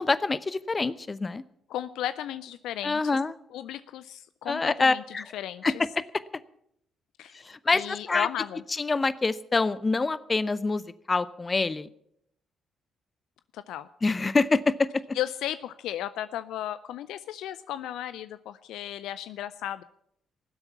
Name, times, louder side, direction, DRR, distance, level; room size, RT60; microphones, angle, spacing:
voice 1, 0.0-1.4 2.8-3.3 4.5-5.2 5.6-5.7 7.4-8.3 8.8-10.8 11.1-11.9 14.0-15.0, left 3 dB, 30° left, 17 dB, 0.8 m, -26 dB
voice 2, 1.7-3.0 3.5-5.0 5.3-5.7 7.2-7.4 7.7-8.6 13.5-13.9 15.1-19.8, left 12 dB, 70° left, 14 dB, 0.4 m, -35 dB
18.5 x 8.0 x 7.3 m, 0.73 s
hypercardioid pair, 45°, 0 cm